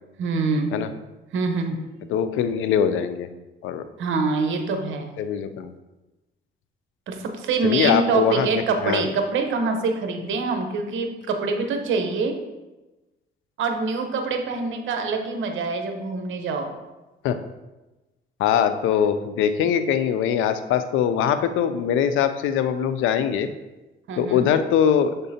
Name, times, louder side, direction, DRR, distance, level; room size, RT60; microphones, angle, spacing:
voice 1, 0.2-0.9 1.3-1.8 4.0-5.1 7.1-12.4 13.6-16.7 24.1-24.5, right 4 dB, 75° right, 5 dB, 0.9 m, -25 dB
voice 2, 2.1-3.3 3.6-3.8 5.2-5.7 7.6-9.0 17.2-17.4 18.4-23.5 24.2-25.1, left 8 dB, 90° left, 11 dB, 0.5 m, -22 dB
6.7 x 3.7 x 4.2 m, 1.1 s
cardioid pair, 90°, 20 cm